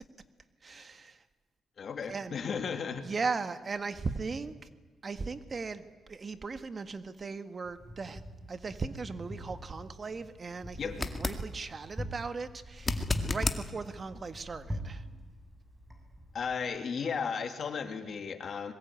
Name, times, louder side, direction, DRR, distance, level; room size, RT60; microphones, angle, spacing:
voice 1, 0.6-1.2 2.1-2.4 3.0-4.5 5.0-8.2 8.5-15.0, right 4 dB, 40° right, 11 dB, 1.6 m, -38 dB
voice 2, 1.8-3.1 10.8-11.0 16.3-18.7, left 6 dB, 55° left, 7 dB, 2.8 m, -35 dB
Wind, 7.6-16.6, equal, 10° right, 7.7 m, -43 dB
sound 1, 10.9-11.4 12.8-13.6 16.6-16.7, left 3 dB, 25° left, 2.1 m, -32 dB
24.5 x 21.5 x 9.5 m, 1.3 s
cardioid pair, 80°, 0 cm